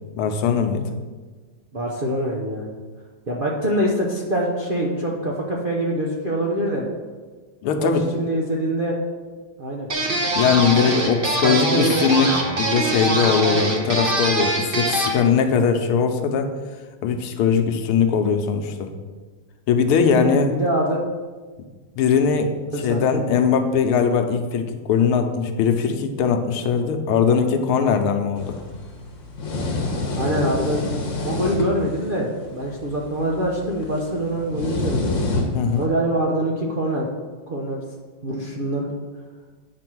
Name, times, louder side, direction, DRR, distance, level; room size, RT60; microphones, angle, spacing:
voice 1, 0.2-0.9 7.6-8.0 10.4-16.5 17.0-18.9 19.7-20.5 22.0-22.5 22.8-28.6 35.6-35.9, left 6 dB, 80° left, 6 dB, 1.7 m, -20 dB
voice 2, 1.7-2.7 3.3-6.9 7.8-9.0 9.6-9.9 11.4-12.0 20.4-21.0 22.7-23.2 30.2-30.8 31.2-35.2 35.8-37.1 37.5-37.8 38.2-38.9, right 1 dB, 80° right, -4 dB, 0.4 m, -24 dB
sound 1, 9.9-15.2, right 2 dB, 35° right, 1.0 m, -23 dB
sound 2, 28.4-35.9, left 2 dB, 45° left, 1.2 m, -29 dB
9.0 x 4.3 x 6.1 m, 1.4 s
omnidirectional pair, 2.4 m